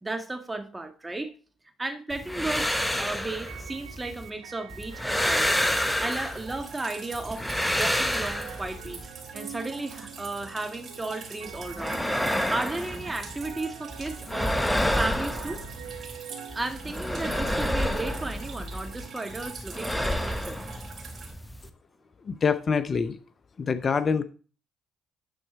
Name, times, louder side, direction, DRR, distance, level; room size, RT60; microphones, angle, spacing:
voice 1, 0.0-1.3 1.8-5.5 6.0-9.0 9.3-12.0 12.5-14.7 14.9-15.6 16.5-20.6, right 2 dB, 20° right, 1.6 m, -34 dB
sound 1, 2.1-4.3 4.7-6.7 7.1-9.1 11.5-13.7 13.9-16.2 16.5-19.1 19.3-21.7, left 1 dB, 5° left, 1.0 m, -29 dB
sound 2, 3.4-19.5, right 9 dB, 85° right, 0.8 m, -46 dB
Drip, 5.6-21.3, right 4 dB, 55° right, 2.9 m, -45 dB
voice 2, 22.3-23.2 23.6-24.2, left 5 dB, 45° left, 0.6 m, -25 dB
11.0 x 4.4 x 4.3 m
hypercardioid pair, 55°, 0 cm